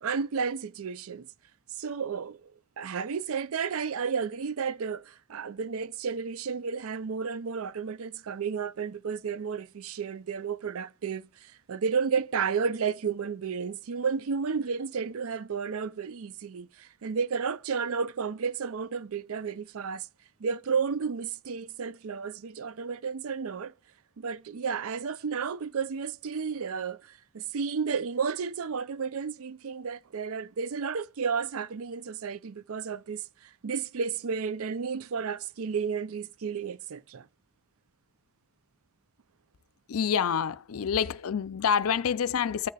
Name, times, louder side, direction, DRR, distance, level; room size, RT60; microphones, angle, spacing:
voice 1, 0.0-1.3 1.7-2.5 2.8-20.1 20.4-23.7 24.2-37.3, right 6 dB, 70° right, 0.5 m, -32 dB
voice 2, 39.9-42.7, left 7 dB, 70° left, 0.5 m, -27 dB
15.0 x 6.6 x 2.3 m
head